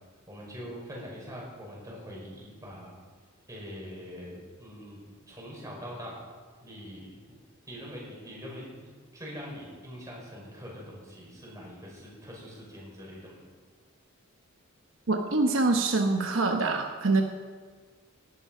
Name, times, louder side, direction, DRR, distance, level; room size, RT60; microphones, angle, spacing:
voice 1, 0.3-2.9 3.5-5.0 5.3-6.2 6.6-7.4 7.7-13.4, equal, 15° right, -3 dB, 5.6 m, -43 dB
voice 2, 15.1-17.2, right 3 dB, 70° right, 3 dB, 1.1 m, -25 dB
18.5 x 11.5 x 5.5 m, 1.6 s
head